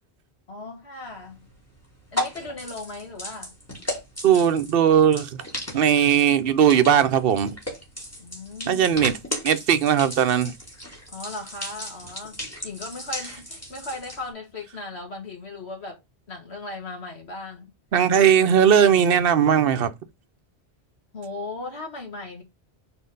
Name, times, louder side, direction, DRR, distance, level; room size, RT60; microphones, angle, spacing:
voice 1, 0.5-1.5 2.1-3.5 8.2-8.9 11.1-16.0 16.3-17.7 21.1-22.4, left 2 dB, 80° left, 2.4 m, -37 dB
sound 1, 1.0-14.3, left 1 dB, 15° left, 2.4 m, -36 dB
voice 2, 4.2-5.3 5.7-7.6 8.7-9.2 9.4-10.5 17.9-19.9, right 8 dB, 65° right, 0.8 m, -18 dB
4.5 x 4.4 x 5.2 m
omnidirectional pair, 1.1 m